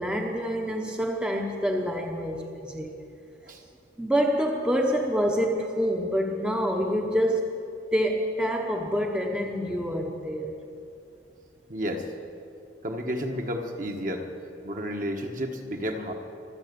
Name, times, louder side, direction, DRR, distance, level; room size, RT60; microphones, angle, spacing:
voice 1, 0.0-2.9 4.0-7.6 7.9-10.6, equal, 5° right, 1 dB, 0.9 m, -27 dB
voice 2, 11.7-12.1 12.8-14.3 14.6-16.1, equal, 45° right, 3 dB, 1.4 m, -31 dB
24.5 x 8.3 x 6.9 m, 2.5 s
head